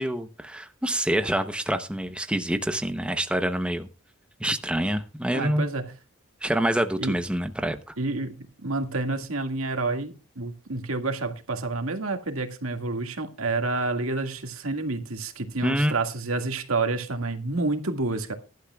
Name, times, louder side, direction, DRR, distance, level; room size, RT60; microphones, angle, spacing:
voice 1, 0.0-3.9 4.4-5.7 6.4-7.8 15.6-15.9, right 1 dB, 5° right, 0.8 m, -26 dB
voice 2, 5.3-5.9 7.0-7.2 8.0-18.3, right 3 dB, 90° right, 1.9 m, -29 dB
21.5 x 12.0 x 2.3 m
head